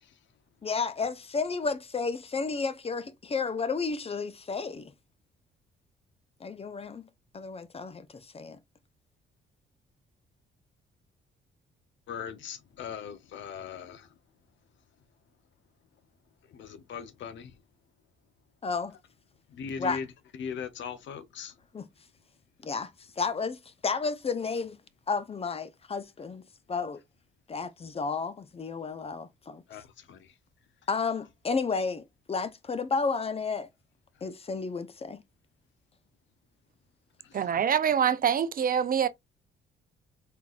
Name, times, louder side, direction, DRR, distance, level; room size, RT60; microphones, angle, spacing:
voice 1, 0.6-4.9 6.4-7.1 7.3-8.6 18.6-18.9 19.8-20.0 21.7-21.9 22.6-22.9 23.2-24.8 25.1-26.4 26.7-27.0 27.5-29.6 30.9-33.7 34.2-35.2, left 4 dB, 30° left, 0.7 m, -32 dB
voice 2, 12.1-14.1 16.5-17.5 19.5-20.1 20.4-21.5 29.7-30.3 37.2-37.6, left 7 dB, 70° left, 0.9 m, -39 dB
voice 3, 37.3-39.1, right 8 dB, 45° right, 0.6 m, -25 dB
4.6 x 3.8 x 2.5 m
cardioid pair, 90°, 20 cm